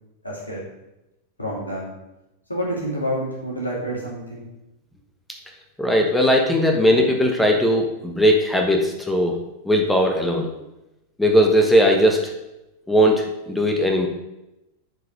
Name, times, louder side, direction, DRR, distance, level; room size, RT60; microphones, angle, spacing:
voice 1, 0.2-0.6 1.4-1.9 2.5-4.5, equal, 80° left, -3 dB, 2.8 m, -28 dB
voice 2, 5.8-9.4 9.6-10.5 11.2-12.2 12.9-14.1, equal, 5° left, 2 dB, 1.2 m, -18 dB
9.6 x 4.7 x 5.2 m, 0.93 s
figure-of-eight pair, 90°, 0 cm